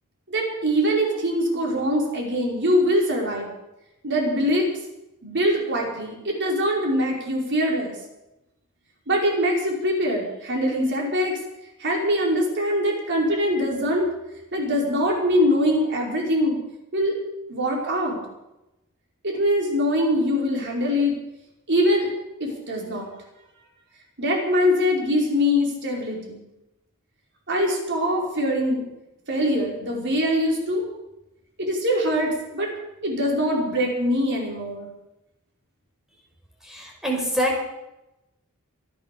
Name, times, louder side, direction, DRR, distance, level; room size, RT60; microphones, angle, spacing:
voice 1, 0.3-3.5 4.0-4.7 5.2-7.9 9.1-11.4 11.8-14.1 14.5-16.6 16.9-17.1 17.5-18.2 19.2-21.1 21.7-22.1 22.4-23.1 24.2-26.4 27.5-28.8 29.3-30.9 31.6-32.7 33.0-34.9, equal, 55° right, -1 dB, 4.9 m, -23 dB
voice 2, 36.6-37.7, equal, ahead, -1 dB, 5.3 m, -25 dB
25.0 x 8.5 x 6.8 m, 0.93 s
head